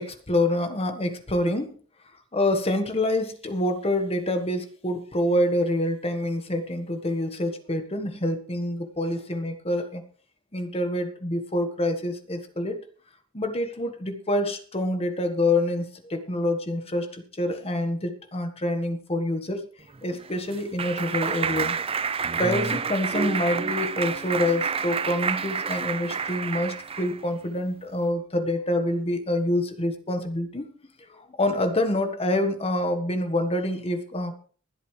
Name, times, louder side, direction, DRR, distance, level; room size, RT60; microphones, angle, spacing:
voice 1, 0.0-1.7 2.3-10.0 10.5-12.8 13.3-19.6 20.0-21.8 22.4-30.7 31.1-34.3, left 1 dB, 30° left, 7 dB, 1.5 m, -26 dB
Clapping, 19.9-27.2, right 5 dB, 30° right, 0.5 m, -29 dB
22.5 x 8.1 x 3.3 m, 0.42 s
head